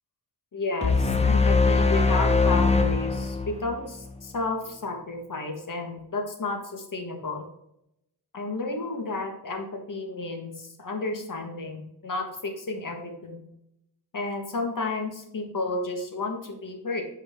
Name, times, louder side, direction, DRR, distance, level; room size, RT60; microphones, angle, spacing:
voice 1, 0.5-7.4 8.3-13.4 14.1-17.0, left 3 dB, 50° left, 3 dB, 1.6 m, -32 dB
sound 1, 0.8-4.1, left 4 dB, 15° left, 0.7 m, -22 dB
8.2 x 4.8 x 3.6 m, 0.81 s
wide cardioid pair, 110°, 40 cm